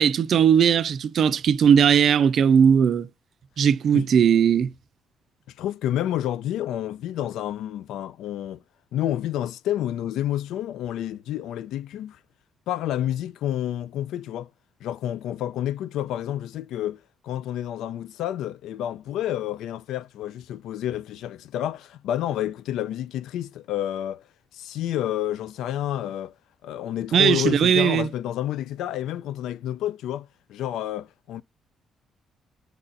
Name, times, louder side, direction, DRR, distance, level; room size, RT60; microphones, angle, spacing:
voice 1, 0.0-3.1 3.6-4.7 27.1-28.1, right 8 dB, 60° right, 0.4 m, -18 dB
voice 2, 5.6-8.6 8.9-12.2 12.7-14.5 14.8-24.2 24.5-26.3 26.6-31.4, left 12 dB, 85° left, 0.3 m, -29 dB
4.7 x 2.5 x 4.0 m
cardioid pair, 90°, 0 cm